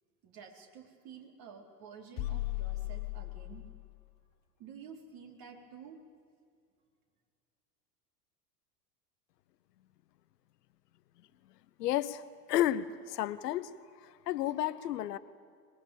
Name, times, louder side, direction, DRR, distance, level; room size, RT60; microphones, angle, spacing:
voice 1, 0.2-3.7 4.6-6.0, right 6 dB, 45° right, 3 dB, 4.6 m, -51 dB
sound 1, 2.2-4.0, left 19 dB, 45° left, 1.2 m, -37 dB
voice 2, 11.8-12.2 12.5-13.7 14.0-15.2, left 12 dB, 70° left, 14 dB, 1.1 m, -31 dB
24.5 x 21.5 x 8.8 m, 2.2 s
hypercardioid pair, 85°, 49 cm